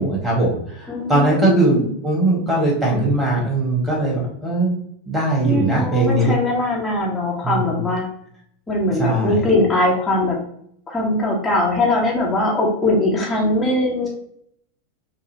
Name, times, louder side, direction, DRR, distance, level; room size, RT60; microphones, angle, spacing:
voice 1, 0.0-1.8 2.0-4.8 5.1-6.3 7.4-7.5 9.0-9.4, right 2 dB, 5° right, -3 dB, 1.6 m, -20 dB
voice 2, 0.9-1.9 5.4-8.1 8.7-10.4 10.9-14.1, left 1 dB, 15° left, -4 dB, 1.0 m, -21 dB
5.5 x 2.2 x 2.8 m, 0.69 s
figure-of-eight pair, 90°, 0 cm